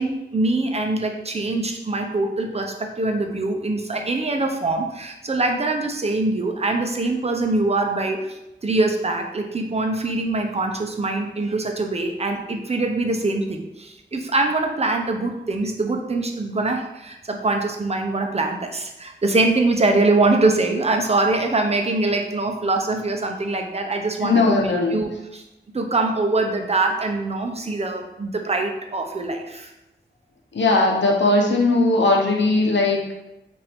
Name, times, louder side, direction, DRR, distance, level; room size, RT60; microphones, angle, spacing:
voice 1, 0.0-25.4 25.7-29.7, right 2 dB, 35° right, 3 dB, 0.6 m, -23 dB
voice 2, 24.2-25.0 30.5-33.1, left 2 dB, 70° left, 0 dB, 0.9 m, -18 dB
5.6 x 2.6 x 3.5 m, 0.94 s
wide cardioid pair, 90°, 19 cm